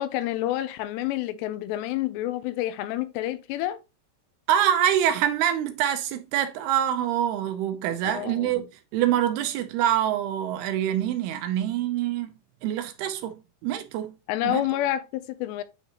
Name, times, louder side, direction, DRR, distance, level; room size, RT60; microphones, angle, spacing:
voice 1, 0.0-3.8 8.0-8.7 14.3-15.6, left 14 dB, 85° left, 2.8 m, -29 dB
voice 2, 4.5-8.7 8.9-12.3 12.6-14.1 14.4-14.6, right 11 dB, 80° right, 2.5 m, -25 dB
9.1 x 3.7 x 2.9 m
omnidirectional pair, 4.9 m